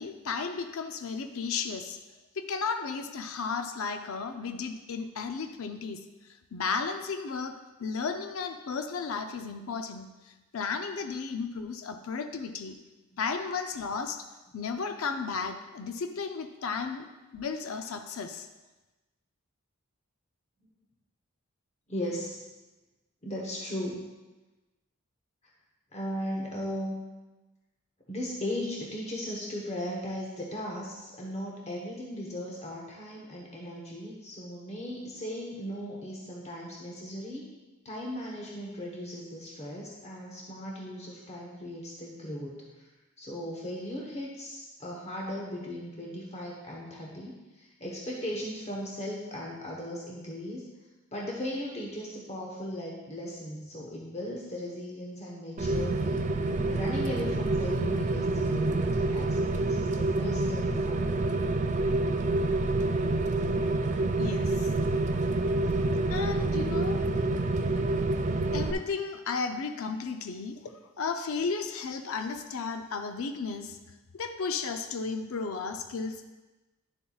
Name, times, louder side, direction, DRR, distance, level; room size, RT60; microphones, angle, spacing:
voice 1, 0.0-2.0 2.4-6.0 6.5-7.5 7.8-10.1 10.5-12.8 13.2-14.2 14.5-17.1 17.3-18.5 64.2-64.7 66.1-67.0 68.5-73.8 74.1-76.3, left 5 dB, 65° left, 6 dB, 0.5 m, -34 dB
voice 2, 21.9-22.4 23.2-24.0 25.9-27.0 28.1-37.5 37.8-42.6 43.2-50.7 51.1-56.3 56.7-61.2, equal, 30° left, -2 dB, 1.0 m, -37 dB
Rain, 55.6-68.7, right 2 dB, 35° right, 0.4 m, -27 dB
11.0 x 7.0 x 2.4 m, 1.1 s
head